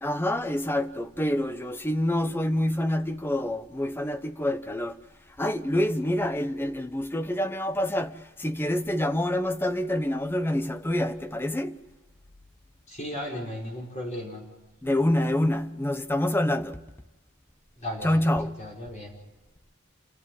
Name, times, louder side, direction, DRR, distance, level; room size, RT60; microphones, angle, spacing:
voice 1, 0.0-5.0 5.3-11.8 14.8-16.8 18.0-18.6, left 1 dB, 10° left, 0.9 m, -27 dB
voice 2, 12.9-14.5 17.8-18.3 18.6-19.1, left 1 dB, 30° left, 5.3 m, -35 dB
29.0 x 14.0 x 9.6 m
head